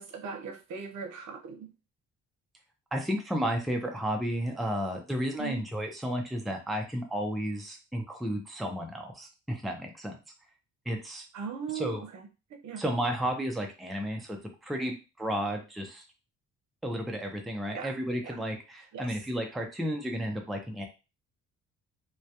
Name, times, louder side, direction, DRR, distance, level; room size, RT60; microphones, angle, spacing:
voice 1, 0.0-1.7 5.4-5.6 11.3-12.3 12.6-12.8 17.7-17.9 18.2-18.4 18.9-19.1, right 6 dB, 65° right, 4 dB, 0.7 m, -39 dB
voice 2, 2.9-10.2 10.9-11.3 11.7-12.0 12.8-14.4 14.6-16.0 16.8-20.9, equal, ahead, 2 dB, 0.4 m, -32 dB
2.2 x 2.1 x 2.7 m, 0.30 s
cardioid pair, 90°, 30 cm